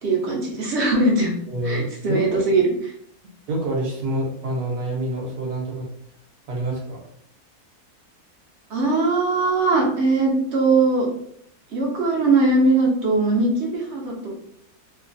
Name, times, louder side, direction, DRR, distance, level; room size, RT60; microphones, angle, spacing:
voice 1, 0.0-1.3 1.6-2.9 8.7-11.1 11.7-14.3, right 3 dB, 55° right, -1 dB, 0.8 m, -20 dB
voice 2, 1.5-2.2 3.5-5.9 6.5-7.0, right 1 dB, 75° right, -1 dB, 1.4 m, -27 dB
3.2 x 2.2 x 2.5 m, 0.69 s
omnidirectional pair, 1.6 m